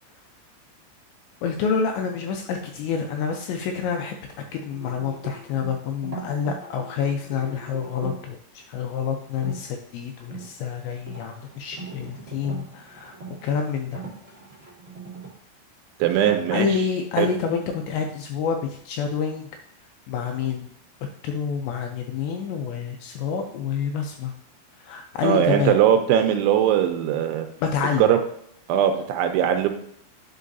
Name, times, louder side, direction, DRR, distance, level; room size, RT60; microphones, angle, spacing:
voice 1, 1.4-4.1 4.5-14.0 16.1-19.5 20.1-20.7 21.2-24.3 24.8-25.8 27.6-28.0, left 6 dB, 80° left, 3 dB, 2.6 m, -28 dB
sound 1, 4.7-8.3 9.3-9.6 10.1-15.3, right 4 dB, 30° right, 1.4 m, -40 dB
voice 2, 16.0-16.7 17.2-17.3 25.2-27.5 28.0-28.2 28.7-29.7, right 10 dB, 80° right, 6 dB, 2.9 m, -20 dB
9.8 x 5.5 x 2.6 m, 0.69 s
omnidirectional pair, 5.6 m